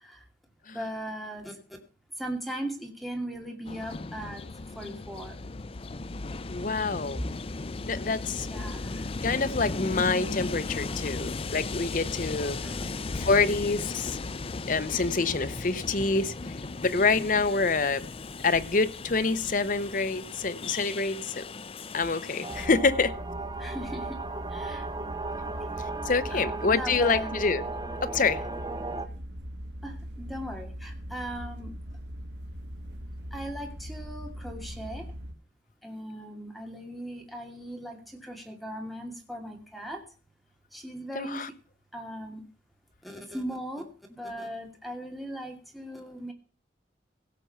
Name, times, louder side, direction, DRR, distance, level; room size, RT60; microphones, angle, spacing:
voice 1, 0.7-1.6 2.2-4.4 4.8-5.4 8.4-9.0 12.5-13.0 23.6-24.2 24.5-24.9 25.7-25.8 26.3-27.3 29.8-31.7 33.3-35.1 35.8-40.0 40.7-41.5 41.9-42.4 43.0-46.3, equal, ahead, 2.4 m, -38 dB
Train, 3.6-22.7, left 3 dB, 35° left, 0.5 m, -36 dB
voice 2, 6.5-7.2 7.8-8.5 9.2-12.6 13.1-14.2 14.7-16.3 16.8-18.0 18.4-21.4 21.9-23.1 26.1-27.6 28.0-28.4 41.1-41.5, left 4 dB, 50° left, 0.9 m, -26 dB
sound 1, 22.4-29.1, right 3 dB, 20° right, 1.2 m, -36 dB
sound 2, 22.5-35.3, equal, 75° right, 2.2 m, -40 dB
17.0 x 6.9 x 5.7 m
head